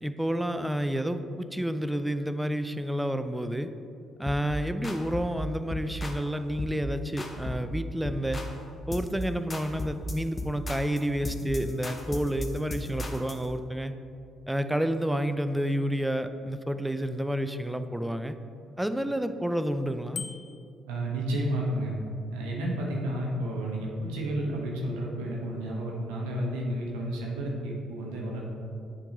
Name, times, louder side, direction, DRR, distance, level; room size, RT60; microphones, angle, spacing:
voice 1, 0.0-3.7 4.2-8.4 8.9-13.9 14.5-18.4 18.8-20.2, equal, 5° right, 10 dB, 0.4 m, -30 dB
sound 1, 4.3-4.5 4.8-5.4 5.7-6.2 6.6-6.8 7.2-7.7 8.0-8.6 8.9-9.2 9.5-13.4, left 1 dB, 35° left, 0.7 m, -36 dB
Bicycle bell, 20.1-20.8, left 6 dB, 60° left, 0.4 m, -39 dB
voice 2, 20.9-21.9 22.3-28.4, right 1 dB, 85° right, -2 dB, 0.8 m, -31 dB
7.2 x 3.8 x 3.9 m, 2.5 s
hypercardioid pair, 55°, 0 cm